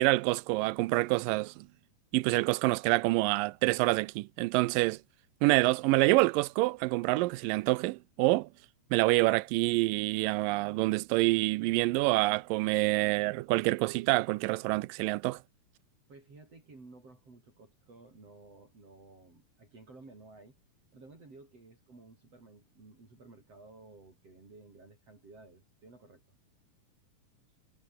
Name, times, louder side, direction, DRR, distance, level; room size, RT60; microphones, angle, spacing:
voice 1, 0.0-1.7 2.1-5.0 5.4-8.5 8.9-15.4, right 21 dB, 90° right, 2.3 m, -27 dB
voice 2, 16.1-20.6 20.9-26.4, right 3 dB, 45° right, 7.6 m, -54 dB
omnidirectional pair, 3.8 m